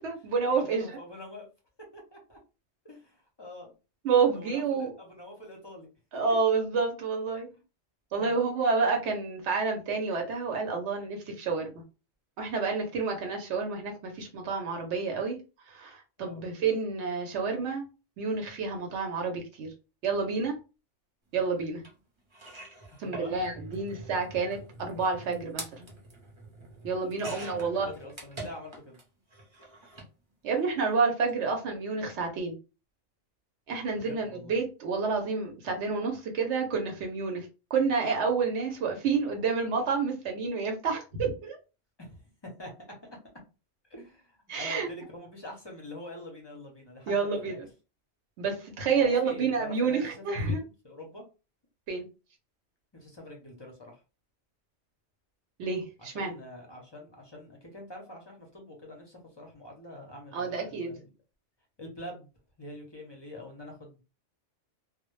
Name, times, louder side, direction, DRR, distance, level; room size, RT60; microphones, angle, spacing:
voice 1, 0.0-0.8 4.0-4.9 6.1-7.5 8.1-11.7 12.4-15.4 15.7-17.9 18.2-19.7 20.0-20.6 21.3-21.8 23.0-25.9 26.8-27.9 30.4-32.5 33.7-41.6 44.5-44.9 47.1-47.6 48.4-50.6 51.9-52.0 55.6-56.3 60.3-60.9, right 5 dB, 80° right, 0.9 m, -29 dB
voice 2, 0.6-1.5 1.9-2.4 2.8-3.7 4.3-5.9 8.2-8.4 16.2-16.4 22.9-23.5 27.1-29.0 34.0-34.6 42.0-42.7 43.9-47.6 48.8-51.2 52.9-54.0 56.0-61.1 61.8-62.3 62.6-64.0, left 1 dB, 35° left, 0.4 m, -45 dB
sound 1, 21.8-21.9 22.3-29.0 29.3-30.1 31.1-31.3 31.6-31.7, right 2 dB, 35° right, 0.5 m, -44 dB
2.1 x 2.0 x 3.0 m
omnidirectional pair, 1.2 m